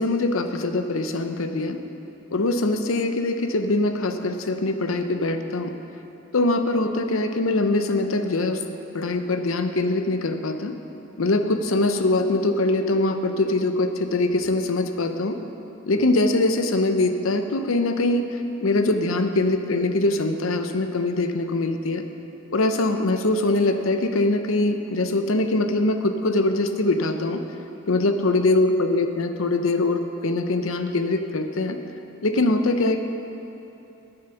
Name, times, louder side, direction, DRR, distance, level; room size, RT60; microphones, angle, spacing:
voice 1, 0.0-1.8 2.3-5.7 6.3-8.6 8.9-10.7 11.2-15.4 15.9-22.0 22.5-27.4 27.9-31.8 32.2-33.0, left 2 dB, 80° left, 7 dB, 0.7 m, -23 dB
9.5 x 8.9 x 6.9 m, 2.9 s
head